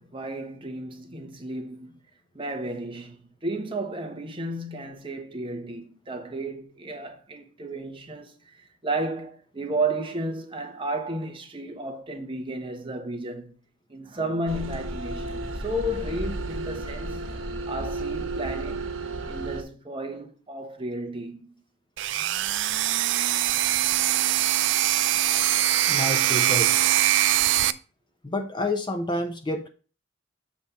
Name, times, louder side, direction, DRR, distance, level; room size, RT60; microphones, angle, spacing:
voice 1, 0.0-2.0 2.3-13.5 13.9-17.3 17.7-18.9 19.3-21.5, right 1 dB, 25° right, 1.2 m, -33 dB
sound 1, 14.5-19.6, right 2 dB, 80° right, 1.3 m, -33 dB
sound 2, 22.0-27.7, right 13 dB, 65° right, 0.4 m, -22 dB
voice 2, 25.9-26.7 28.2-29.7, left 1 dB, 25° left, 0.7 m, -29 dB
7.4 x 3.4 x 5.6 m
head